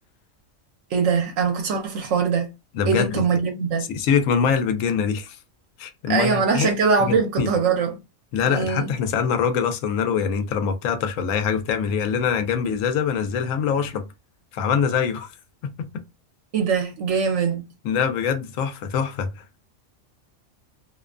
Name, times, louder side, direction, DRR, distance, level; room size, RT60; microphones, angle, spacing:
voice 1, 0.9-2.5 2.9-3.9 6.1-8.0 8.5-8.9 16.5-17.7, right 5 dB, 70° right, 0.9 m, -22 dB
voice 2, 2.7-3.1 3.9-5.4 5.8-6.7 7.0-7.5 8.3-14.1 14.5-15.3 15.6-16.0 17.8-19.4, left 7 dB, 80° left, 1.0 m, -24 dB
2.5 x 2.2 x 2.3 m
omnidirectional pair, 1.3 m